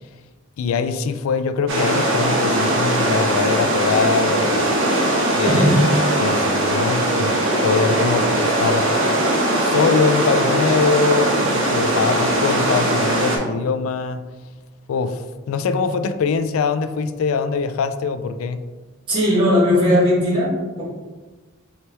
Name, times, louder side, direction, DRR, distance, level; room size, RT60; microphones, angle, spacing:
voice 1, 0.6-4.7 5.3-5.8 6.2-8.9 9.6-14.2 14.9-18.6, left 5 dB, 75° left, 11 dB, 0.3 m, -23 dB
sound 1, 1.7-13.4, right 1 dB, 65° right, 0.9 m, -20 dB
voice 2, 5.4-5.8 19.1-20.5, equal, 25° right, -10 dB, 1.0 m, -17 dB
4.4 x 2.8 x 3.3 m, 1.3 s
head